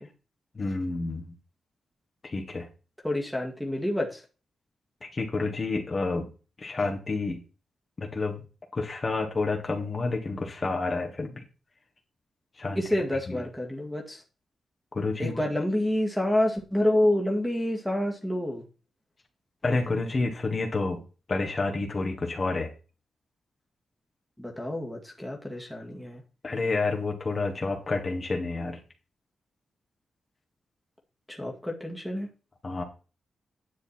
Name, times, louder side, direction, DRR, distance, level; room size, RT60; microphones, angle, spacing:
voice 1, 0.5-1.3 2.2-2.7 5.0-6.3 6.6-7.4 8.0-8.4 8.7-11.4 12.6-12.8 13.3-13.4 14.9-15.4 19.6-21.0 21.3-22.7 26.4-28.8 32.6-32.8, left 3 dB, 35° left, 3 dB, 1.7 m, -29 dB
voice 2, 3.0-4.2 12.8-14.2 15.2-18.6 24.4-26.2 31.3-32.3, left 1 dB, ahead, -1 dB, 2.0 m, -28 dB
10.0 x 6.5 x 4.4 m, 0.34 s
cardioid pair, 100°, 0 cm